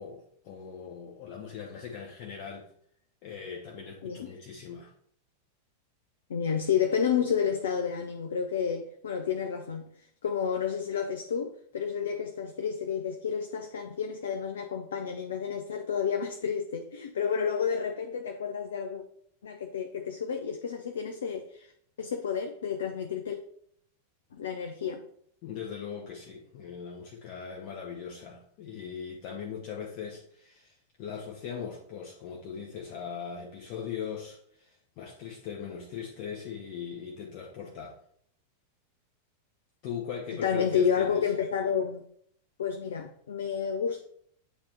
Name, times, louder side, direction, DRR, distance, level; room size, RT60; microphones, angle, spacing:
voice 1, 0.0-2.7 3.2-4.9 25.4-38.0 39.8-41.3, left 7 dB, 45° left, 0.9 m, -40 dB
voice 2, 6.3-9.9 10.2-19.0 19.4-21.7 22.0-23.4 24.3-25.0 40.4-42.0 42.6-44.0, left 7 dB, 65° left, 0.5 m, -30 dB
8.4 x 2.9 x 4.5 m
figure-of-eight pair, 90°, 0 cm